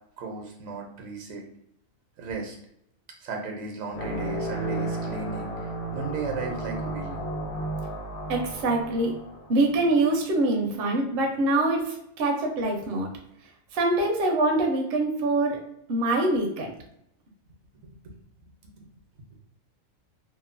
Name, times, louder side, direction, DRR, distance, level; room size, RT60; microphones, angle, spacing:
voice 1, 0.2-1.4 2.2-2.6 3.2-7.3 18.0-18.2 18.6-18.9, right 4 dB, 80° right, 1 dB, 1.0 m, -36 dB
sound 1, 3.9-10.1, right 1 dB, 60° left, 0.8 m, -33 dB
voice 2, 8.3-9.1 9.5-13.1 13.7-15.6 15.9-16.7, right 2 dB, 60° right, 1 dB, 0.7 m, -24 dB
2.9 x 2.1 x 2.4 m, 0.74 s
omnidirectional pair, 1.4 m